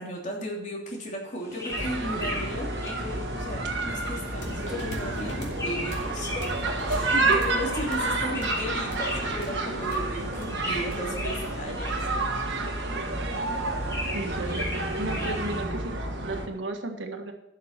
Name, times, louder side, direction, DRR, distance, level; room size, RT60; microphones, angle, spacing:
voice 1, 0.0-6.5 6.9-12.1, equal, 40° left, -1 dB, 3.0 m, -36 dB
sound 1, 1.3-15.6, left 1 dB, 15° left, 3.6 m, -38 dB
sound 2, 1.7-16.5, right 2 dB, 70° right, 1.6 m, -30 dB
sound 3, 4.4-12.0, left 1 dB, 70° left, 2.8 m, -41 dB
voice 2, 7.1-7.4 14.1-14.7 15.0-17.3, right 2 dB, 90° right, 4 dB, 1.6 m, -33 dB
12.5 x 6.6 x 5.9 m, 0.90 s
head